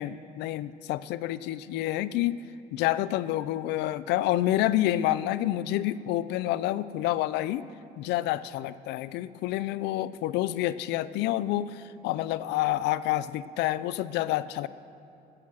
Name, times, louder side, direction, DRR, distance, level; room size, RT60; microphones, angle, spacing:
voice 1, 0.0-2.4 2.7-7.6 8.0-14.7, left 14 dB, 85° left, 16 dB, 0.5 m, -28 dB
16.5 x 14.0 x 6.3 m, 2.7 s
cardioid pair, 110°, 17 cm